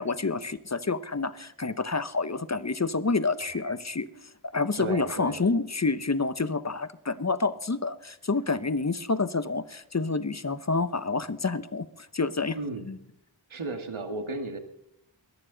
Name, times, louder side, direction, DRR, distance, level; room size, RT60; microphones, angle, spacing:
voice 1, 0.0-4.1 4.4-12.6 12.9-13.0, left 3 dB, 35° left, 14 dB, 0.9 m, -28 dB
sound 1, 3.4-4.6, equal, 25° right, 6.6 m, -50 dB
voice 2, 4.8-5.4 12.5-12.9 13.5-14.6, right 3 dB, 85° right, 7 dB, 2.1 m, -34 dB
22.5 x 10.0 x 4.0 m, 0.76 s
wide cardioid pair, 60°, 48 cm